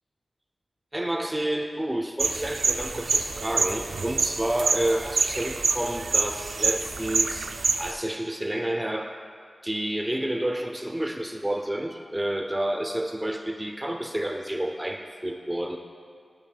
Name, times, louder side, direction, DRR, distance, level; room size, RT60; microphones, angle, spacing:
voice 1, 0.9-9.1 9.6-15.8, right 1 dB, 10° right, 4 dB, 0.4 m, -29 dB
sound 1, 2.2-7.9, right 4 dB, 85° right, 0.4 m, -27 dB
15.5 x 6.5 x 2.3 m, 2.2 s
wide cardioid pair, 115°, 0 cm